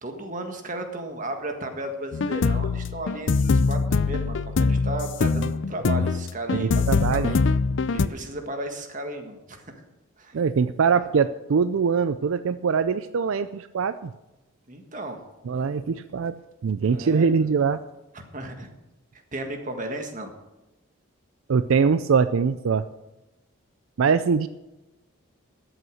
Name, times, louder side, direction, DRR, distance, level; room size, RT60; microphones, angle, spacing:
voice 1, 0.0-7.4 7.8-9.8 10.2-10.4 14.7-15.2 16.9-17.5 18.1-18.7 19.1-20.3, right 1 dB, 35° right, 5 dB, 1.7 m, -34 dB
sound 1, 2.1-8.1, left 4 dB, 60° left, 0.4 m, -23 dB
voice 2, 6.5-7.3 10.3-14.1 15.5-16.3 16.6-17.8 21.5-22.8 24.0-24.5, right 5 dB, 75° right, 13 dB, 0.4 m, -23 dB
13.5 x 8.0 x 6.4 m, 1.0 s
head